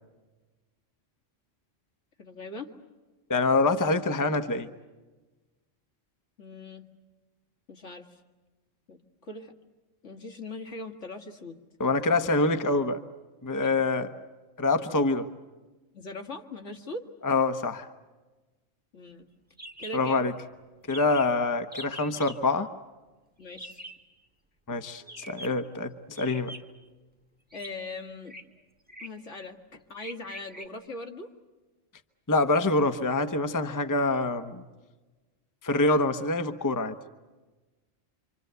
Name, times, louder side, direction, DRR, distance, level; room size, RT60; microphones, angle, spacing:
voice 1, 2.2-2.7 6.4-6.8 7.7-8.2 8.9-9.5 10.0-11.6 13.6-13.8 15.9-17.1 18.9-19.3 19.8-20.2 23.4-23.8 27.5-28.3 29.0-29.6 29.9-31.3, left 2 dB, 70° left, 3 dB, 2.3 m, -40 dB
voice 2, 3.3-4.7 11.8-13.0 13.4-14.1 14.6-15.3 17.2-17.9 19.9-20.3 20.9-22.7 24.7-26.5 32.3-34.6 35.6-37.0, left 3 dB, 15° left, 8 dB, 0.9 m, -25 dB
sound 1, 19.6-20.0 20.3-20.4 20.6-20.7 20.9-21.4 21.7-22.4 23.6-24.0 25.0-25.6 26.2-26.8 27.5-27.7 28.2-28.4 28.9-29.2 30.0-30.7, right 1 dB, 5° right, 1.6 m, -43 dB
27.0 x 26.5 x 8.1 m, 1.2 s
omnidirectional pair, 1.3 m